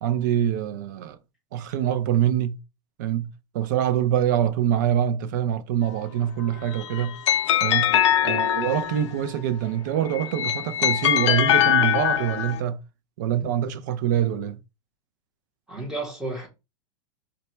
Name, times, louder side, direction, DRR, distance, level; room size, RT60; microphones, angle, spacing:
voice 1, 0.0-1.2 1.5-2.6 3.0-3.3 3.5-7.2 7.6-7.9 8.2-12.8 13.2-14.6, right 10 dB, 35° right, 0.4 m, -25 dB
sound 1, 6.6-9.2 10.2-12.6, left 10 dB, 65° left, 0.5 m, -22 dB
voice 2, 15.7-16.5, right 2 dB, 5° right, 0.9 m, -32 dB
3.9 x 2.2 x 4.3 m
supercardioid pair, 175°, 16 cm